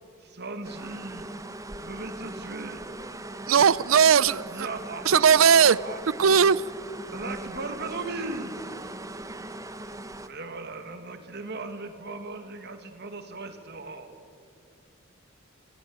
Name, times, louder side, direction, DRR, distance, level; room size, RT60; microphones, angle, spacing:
voice 1, 0.2-1.3 1.8-2.8 4.5-6.0 6.4-6.5 7.1-8.6 10.3-14.1, right 3 dB, 55° right, 7 dB, 2.4 m, -37 dB
sound 1, 0.6-10.3, right 1 dB, 15° right, 1.0 m, -40 dB
voice 2, 3.5-4.7 5.0-5.8 6.2-6.6, right 7 dB, 80° right, 20 dB, 0.6 m, -18 dB
26.5 x 18.5 x 8.8 m, 2.3 s
head